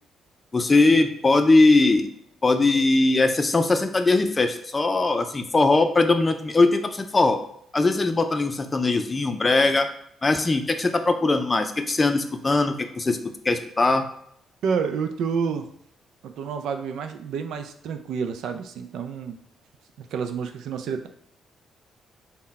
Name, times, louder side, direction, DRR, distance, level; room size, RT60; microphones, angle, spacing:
voice 1, 0.5-2.1 2.4-7.4 7.7-9.9 10.2-13.2 13.4-14.1, left 3 dB, 25° left, 7 dB, 0.4 m, -20 dB
voice 2, 14.6-15.7 16.2-19.4 20.0-21.1, right 6 dB, 80° right, 7 dB, 0.4 m, -29 dB
3.8 x 2.2 x 4.1 m, 0.70 s
cardioid pair, 85°, 0 cm